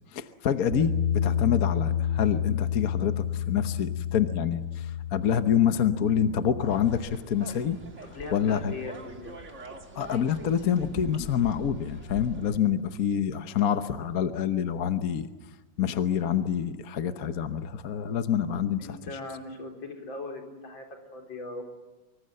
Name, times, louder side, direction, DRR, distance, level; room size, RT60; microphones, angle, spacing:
voice 1, 0.1-7.8 8.3-8.7 9.9-15.3 15.8-19.0, left 8 dB, 55° left, 9 dB, 1.3 m, -27 dB
Bass guitar, 0.7-7.0, left 8 dB, 50° right, 8.1 m, -30 dB
sound 1, 6.7-12.6, right 2 dB, 35° right, 2.6 m, -43 dB
voice 2, 8.0-9.3 18.8-20.9 21.1-21.6, left 2 dB, 80° left, 2 dB, 4.6 m, -39 dB
25.5 x 24.5 x 7.7 m, 1.2 s
omnidirectional pair, 2.1 m